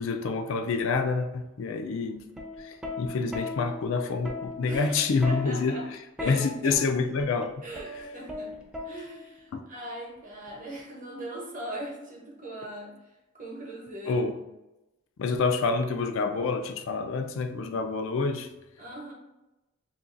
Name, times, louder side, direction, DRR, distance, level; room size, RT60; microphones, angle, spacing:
voice 1, 0.0-2.2 2.6-5.8 6.2-7.5 9.5-9.6 14.0-14.3 15.2-18.5, left 4 dB, 65° left, 7 dB, 0.4 m, -27 dB
Plucked string instrument, 2.2-9.4 10.5-10.8, left 3 dB, 5° right, 0.4 m, -38 dB
voice 2, 4.7-5.9 6.2-6.8 7.6-8.6 8.8-14.2 18.8-19.1, right 1 dB, 40° right, -2 dB, 0.9 m, -40 dB
2.9 x 2.6 x 3.7 m, 0.98 s
head